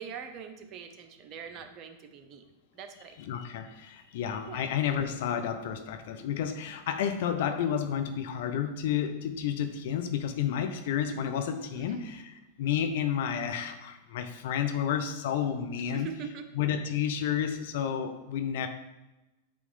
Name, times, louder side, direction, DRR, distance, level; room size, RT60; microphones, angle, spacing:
voice 1, 0.0-2.5 2.7-3.2 4.5-4.6 11.7-12.0 15.9-16.5, right 7 dB, 45° right, 7 dB, 0.8 m, -42 dB
voice 2, 3.2-16.1 16.6-18.7, left 8 dB, 65° left, 7 dB, 0.8 m, -31 dB
8.6 x 3.2 x 5.5 m, 1.0 s
hypercardioid pair, 95°, 0 cm